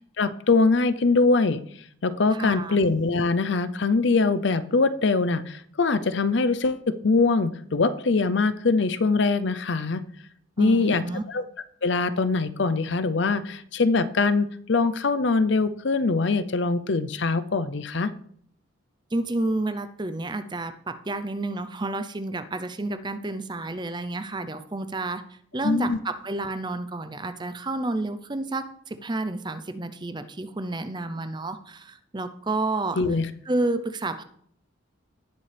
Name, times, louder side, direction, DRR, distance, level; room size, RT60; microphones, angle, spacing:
voice 1, 0.2-1.6 2.0-10.0 10.6-11.4 11.8-18.1 25.6-26.0 33.0-33.3, left 3 dB, 65° left, 12 dB, 0.6 m, -23 dB
voice 2, 2.3-2.8 10.6-11.2 19.1-25.2 25.5-33.0 33.5-34.2, right 2 dB, 20° right, 10 dB, 0.6 m, -30 dB
18.0 x 6.8 x 3.4 m, 0.64 s
head